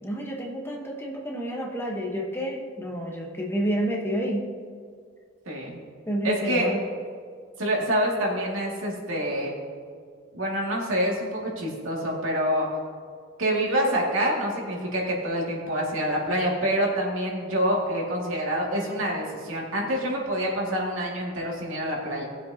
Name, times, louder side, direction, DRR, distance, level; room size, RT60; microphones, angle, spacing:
voice 1, 0.0-4.4 6.1-6.8, equal, 10° left, -1 dB, 1.2 m, -29 dB
voice 2, 5.5-5.8 6.2-6.7 7.6-9.5 10.3-12.7 13.4-22.3, equal, 85° right, -3 dB, 2.3 m, -26 dB
18.5 x 7.5 x 2.9 m, 2.1 s
head